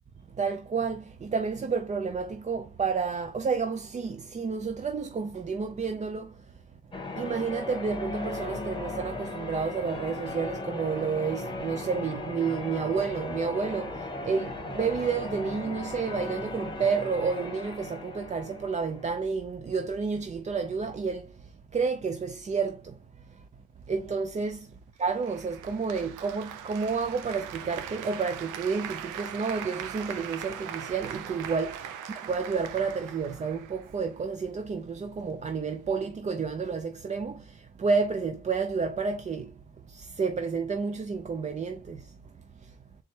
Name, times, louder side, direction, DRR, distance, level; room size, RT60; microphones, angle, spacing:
voice 1, 0.3-6.8 7.2-23.5 23.9-42.8, right 5 dB, 25° right, 0.4 m, -31 dB
Church bell, 6.9-19.2, left 2 dB, 15° left, 1.1 m, -37 dB
Applause, 25.2-34.2, right 9 dB, 90° right, 0.6 m, -40 dB
4.1 x 3.3 x 3.1 m
cardioid pair, 90°, 30 cm